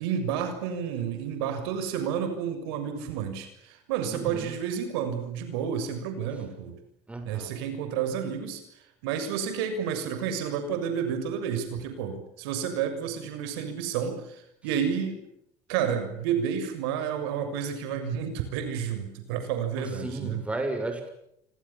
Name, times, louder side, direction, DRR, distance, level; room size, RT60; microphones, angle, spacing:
voice 1, 0.0-6.7 7.2-8.6 9.0-15.2 15.7-20.4, right 8 dB, 90° right, 7 dB, 6.9 m, -30 dB
voice 2, 4.1-4.5 7.1-7.5 19.8-21.1, right 2 dB, 10° right, 5 dB, 6.9 m, -34 dB
29.0 x 25.5 x 7.4 m, 0.76 s
cardioid pair, 125°, 12 cm